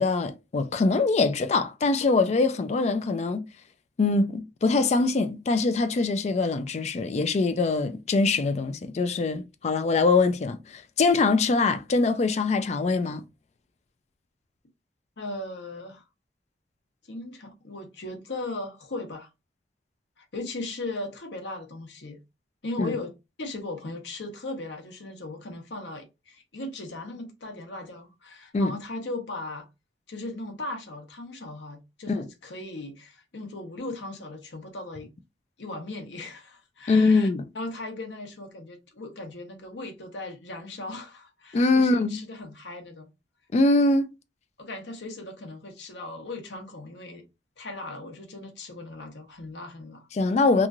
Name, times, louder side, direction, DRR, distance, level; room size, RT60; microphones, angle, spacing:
voice 1, 0.0-3.5 4.0-13.2 22.8-23.0 28.5-28.7 32.1-32.2 36.9-37.4 41.5-42.2 43.5-44.1 50.1-50.7, left 3 dB, 40° left, 0.3 m, -23 dB
voice 2, 15.2-16.0 17.1-19.3 20.2-22.2 22.6-23.1 23.4-29.7 30.1-35.1 35.6-37.3 37.5-43.1 44.6-47.2 47.6-50.4, left 2 dB, 85° left, 0.8 m, -38 dB
3.0 x 2.4 x 2.4 m
head